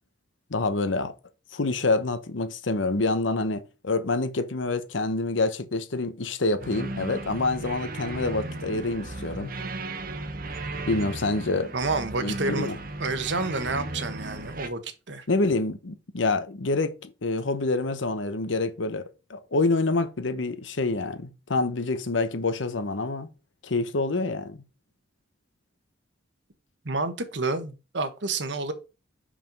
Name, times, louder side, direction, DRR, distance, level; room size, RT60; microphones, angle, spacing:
voice 1, 0.5-1.1 1.5-9.5 10.9-11.7 12.2-12.8 15.3-19.0 19.3-23.3 23.6-24.6, left 3 dB, 85° left, 0.9 m, -27 dB
sound 1, 6.6-14.7, right 2 dB, 50° right, 0.9 m, -35 dB
voice 2, 11.7-12.7 13.0-15.3 26.8-28.7, right 3 dB, 70° right, 1.1 m, -29 dB
5.6 x 5.1 x 5.3 m
head